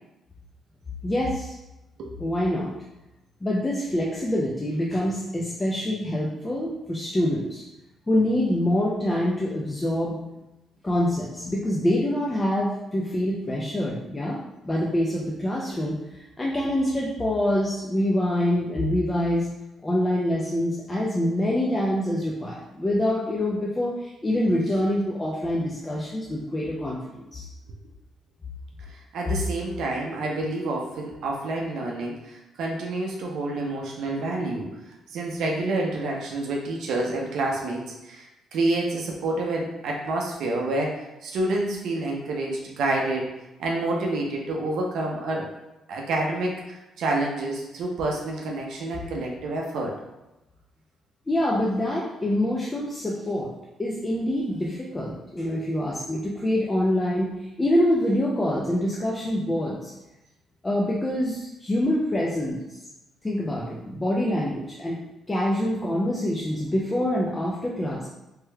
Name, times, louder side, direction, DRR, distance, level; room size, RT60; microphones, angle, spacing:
voice 1, 1.0-1.5 2.2-2.7 3.4-7.6 8.1-10.2 10.8-14.4 14.6-19.5 19.8-27.4 51.3-53.5 53.8-57.3 57.6-59.9 60.6-62.6 63.2-65.0 65.3-68.1, left 1 dB, 20° left, -4 dB, 0.5 m, -25 dB
voice 2, 28.9-34.7 35.1-38.3 38.5-43.3 43.6-45.5 45.9-50.0, right 2 dB, 75° right, -1 dB, 0.5 m, -28 dB
3.2 x 3.1 x 2.2 m, 0.97 s
cardioid pair, 90°, 0 cm